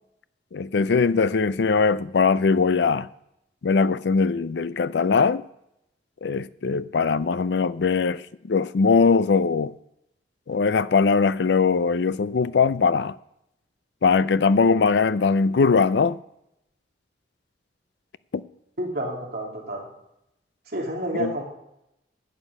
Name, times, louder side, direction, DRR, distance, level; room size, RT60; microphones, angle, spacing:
voice 1, 0.5-3.1 3.6-5.4 6.2-9.7 10.5-13.2 14.0-16.2 18.3-18.4 21.1-21.3, left 5 dB, 70° left, 0.5 m, -21 dB
voice 2, 18.8-19.9 20.7-21.4, right 1 dB, 60° right, 3.0 m, -29 dB
12.0 x 8.8 x 5.4 m
head